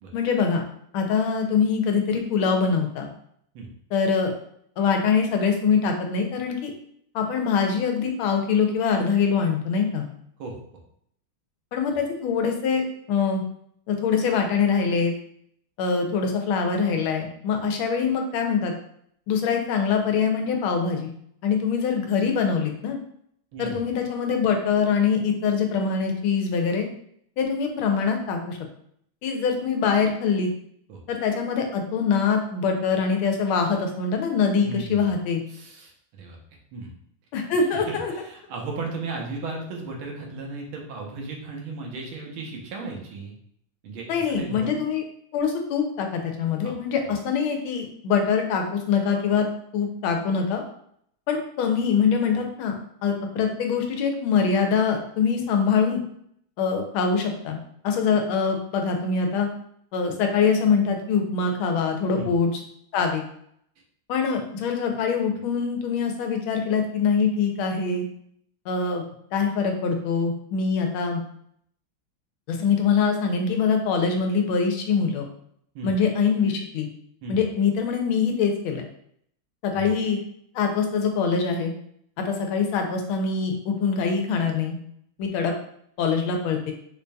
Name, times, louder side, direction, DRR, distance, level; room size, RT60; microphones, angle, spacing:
voice 1, 0.1-0.7 0.9-3.1 3.9-4.3 4.8-6.7 7.1-10.1 11.7-13.4 13.9-15.1 15.8-18.7 19.3-21.1 21.4-23.0 23.6-26.9 27.4-28.6 29.2-30.5 31.1-35.4 37.3-38.1 44.1-45.0 45.3-49.5 49.7-50.6 51.3-52.7 53.0-56.0 56.6-57.6 57.8-59.5 59.9-62.5 62.9-63.2 64.1-68.1 68.7-69.0 69.3-71.2 72.5-75.3 75.8-76.9 77.3-78.8 79.6-80.2 80.5-81.7 82.2-84.8 85.2-85.5 86.0-86.7, left 5 dB, 90° left, 3 dB, 1.5 m, -24 dB
voice 2, 34.6-35.1 35.5-36.4 36.7-36.9 37.7-43.3 43.8-44.7 46.6-46.7 47.0-47.2 62.1-62.3 75.7-75.9 77.2-77.4 79.7-79.9, right 3 dB, 85° right, 0 dB, 1.7 m, -35 dB
5.0 x 2.6 x 2.2 m, 0.68 s
omnidirectional pair, 2.2 m